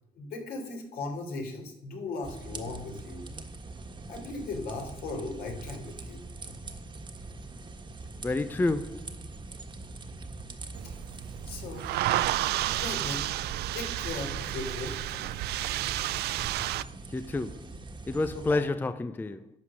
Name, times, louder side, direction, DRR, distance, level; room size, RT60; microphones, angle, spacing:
voice 1, 0.2-3.3 4.1-6.2 10.8-10.9 11.5-11.9 12.8-13.3 13.7-15.2 18.3-18.7, left 3 dB, 65° left, 3.6 m, -37 dB
sound 1, 2.2-18.6, right 3 dB, 25° right, 1.5 m, -43 dB
voice 2, 8.2-9.2 17.1-17.8 18.1-19.5, left 2 dB, 10° left, 0.5 m, -29 dB
sound 2, 10.8-16.8, right 15 dB, 75° right, 0.5 m, -31 dB
12.0 x 8.0 x 6.3 m
cardioid pair, 110°, 17 cm